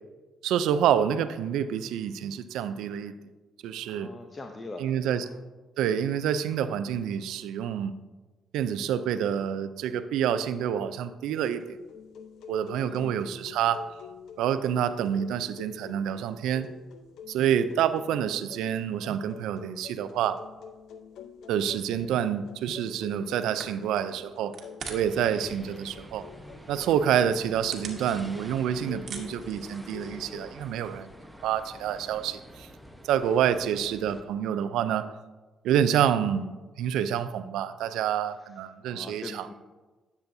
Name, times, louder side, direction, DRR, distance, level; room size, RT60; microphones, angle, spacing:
voice 1, 0.4-3.1 3.6-4.1 4.8-5.3 5.8-7.9 8.5-11.8 12.5-13.8 14.4-16.7 17.3-20.4 21.5-24.5 24.9-26.3 26.7-31.1 31.4-32.7 33.1-35.1 35.6-39.5, right 9 dB, 90° right, 12 dB, 0.4 m, -27 dB
voice 2, 3.9-4.9 5.2-5.4 12.8-13.2 38.8-39.5, left 3 dB, 30° left, 4 dB, 0.6 m, -42 dB
sound 1, 11.4-30.5, left 7 dB, 80° left, 0.6 m, -47 dB
sound 2, 23.6-25.2 25.5-26.1 26.6-26.7 27.2-28.6 28.9-30.2, right 5 dB, 60° right, 1.2 m, -42 dB
sound 3, 24.8-34.2, equal, ahead, 0.8 m, -47 dB
10.5 x 6.9 x 2.6 m, 1.2 s
cardioid pair, 90°, 0 cm